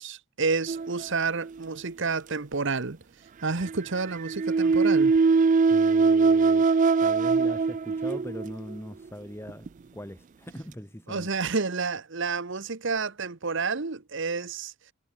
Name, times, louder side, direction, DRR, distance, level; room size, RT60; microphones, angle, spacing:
voice 1, 0.0-3.0 3.4-5.1 11.1-14.7, right 4 dB, 60° right, 1.1 m, -30 dB
sound 1, 0.7-1.6 3.6-8.8 9.5-9.7 10.5-10.6, right 4 dB, 35° right, 0.3 m, -22 dB
voice 2, 5.7-6.7 7.0-11.3, equal, 10° left, 3.3 m, -41 dB
head